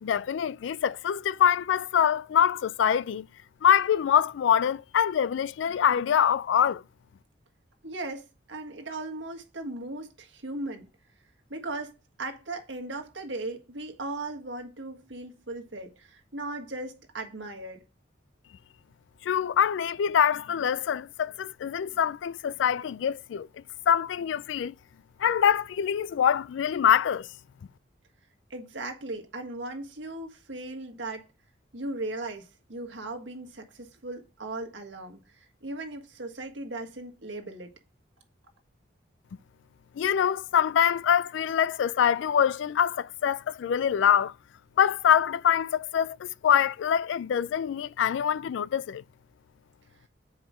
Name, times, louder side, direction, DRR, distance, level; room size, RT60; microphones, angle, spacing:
voice 1, 0.0-3.3 3.6-6.8 19.2-23.5 23.9-24.7 25.2-27.3 40.0-44.3 44.8-49.0, left 8 dB, 80° left, 0.3 m, -24 dB
voice 2, 7.8-10.9 11.5-17.8 28.5-31.3 31.7-37.7, right 2 dB, 80° right, 1.6 m, -37 dB
8.0 x 5.0 x 4.8 m
head